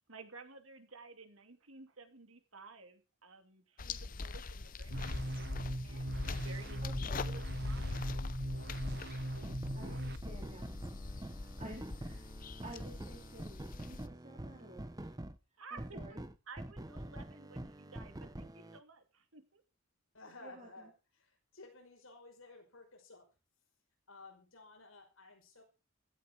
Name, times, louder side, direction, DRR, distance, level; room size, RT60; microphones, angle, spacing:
voice 1, 0.1-5.1 5.8-8.2 15.6-16.2 16.5-19.6, right 4 dB, 75° right, 7 dB, 2.6 m, -54 dB
sound 1, 3.8-14.1, left 3 dB, 40° left, 0.7 m, -42 dB
sound 2, 4.9-10.2, right 1 dB, 50° right, 1.2 m, -40 dB
voice 2, 6.8-7.2 9.8-10.7 11.0-12.3 12.6-15.1 15.7-16.2 20.4-20.7, right 1 dB, 35° right, 0 dB, 3.9 m, -52 dB
sound 3, 8.8-9.0 9.4-15.4 15.8-18.8, right 1 dB, 15° right, 0.8 m, -46 dB
voice 3, 20.1-23.2 24.1-25.6, left 3 dB, 75° left, 2 dB, 5.7 m, -55 dB
16.0 x 14.0 x 4.5 m, 0.33 s
head